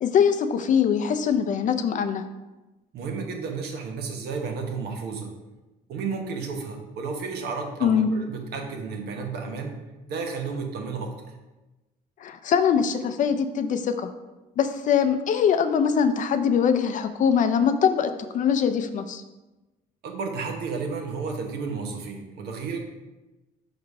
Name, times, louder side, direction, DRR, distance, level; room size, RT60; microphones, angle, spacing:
voice 1, 0.0-2.2 7.8-8.1 12.2-14.1 14.6-19.2, left 7 dB, 50° left, 9 dB, 0.5 m, -22 dB
voice 2, 2.9-5.4 5.9-9.8 10.1-11.1 20.0-22.8, right 5 dB, 75° right, 3 dB, 1.1 m, -32 dB
5.3 x 3.9 x 4.7 m, 1.1 s
cardioid pair, 110°, 17 cm